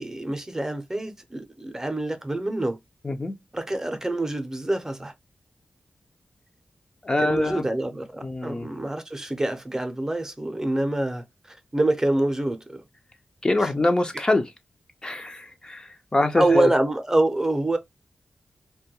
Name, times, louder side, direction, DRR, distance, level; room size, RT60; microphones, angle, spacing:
voice 1, 0.0-2.8 3.5-5.1 7.2-12.8 16.4-17.8, right 2 dB, 20° right, 0.6 m, -26 dB
voice 2, 7.0-7.7 8.2-8.7 13.4-14.5 15.0-16.7, left 2 dB, 30° left, 0.4 m, -24 dB
2.2 x 2.1 x 2.8 m
wide cardioid pair, 70°, 3 cm